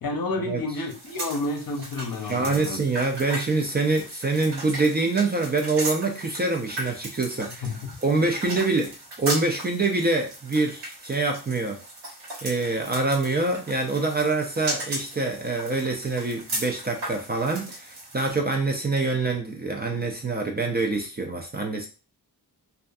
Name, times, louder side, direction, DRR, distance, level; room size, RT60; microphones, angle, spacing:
voice 1, 0.0-2.8 7.4-7.8, left 2 dB, 55° left, 0.6 m, -30 dB
sound 1, 0.9-18.3, right 1 dB, 85° right, 1.1 m, -37 dB
voice 2, 2.3-7.7 8.0-11.8 12.4-21.9, right 3 dB, 25° right, 0.3 m, -25 dB
2.5 x 2.3 x 2.3 m
wide cardioid pair, 110°, 41 cm